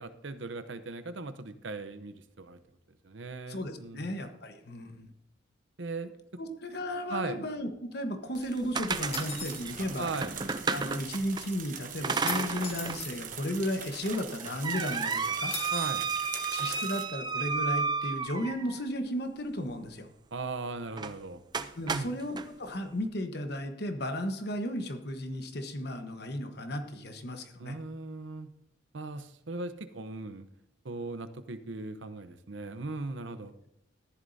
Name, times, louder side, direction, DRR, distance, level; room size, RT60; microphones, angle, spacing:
voice 1, 0.0-2.6 3.0-4.1 5.8-6.1 7.1-7.4 10.0-10.4 15.7-16.0 20.3-21.4 21.9-22.1 27.6-28.5 28.9-30.5 30.8-33.5, right 3 dB, 75° right, 11 dB, 0.8 m, -38 dB
voice 2, 3.5-5.1 6.4-10.1 10.7-15.5 16.5-20.1 21.8-27.8, left 1 dB, 55° left, 7 dB, 1.2 m, -34 dB
sound 1, 8.3-11.4 12.0-13.0 13.4-13.5 14.1-18.8 20.9-21.1 21.5-22.5, right 5 dB, 20° right, 0.5 m, -32 dB
sound 2, 8.9-17.1, right 7 dB, 45° right, 1.1 m, -42 dB
sound 3, 9.1-9.6 12.3-13.2 15.5-16.0, left 4 dB, 30° left, 1.9 m, -38 dB
14.0 x 11.0 x 2.7 m, 0.80 s
head